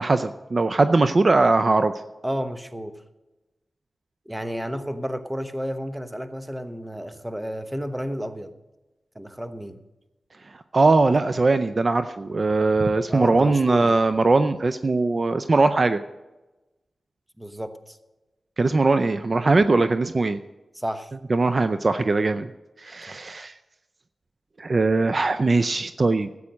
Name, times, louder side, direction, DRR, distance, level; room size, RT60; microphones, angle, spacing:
voice 1, 0.0-1.9 10.5-16.0 18.6-20.4 21.3-22.5 22.8-23.5 24.6-26.3, right 3 dB, 50° right, 10 dB, 0.5 m, -20 dB
voice 2, 2.2-2.9 4.3-8.5 9.1-9.8 13.1-14.0 17.4-18.0 20.7-21.1 23.1-23.2, equal, 10° right, 10 dB, 1.1 m, -31 dB
13.0 x 8.4 x 6.3 m, 1.1 s
cardioid pair, 60°, 0 cm